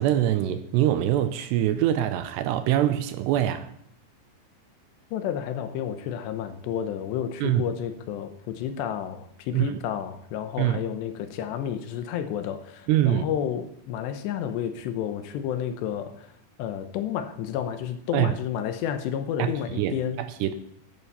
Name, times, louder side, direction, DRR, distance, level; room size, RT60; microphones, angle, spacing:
voice 1, 0.0-3.7 7.4-7.6 9.5-9.8 10.6-10.8 12.9-13.3 18.1-18.3 19.4-19.5 19.8-20.5, right 12 dB, 80° right, 2.7 m, -24 dB
voice 2, 5.1-16.3 16.6-20.2, left 9 dB, 80° left, 3.0 m, -31 dB
11.0 x 11.0 x 5.6 m
omnidirectional pair, 5.3 m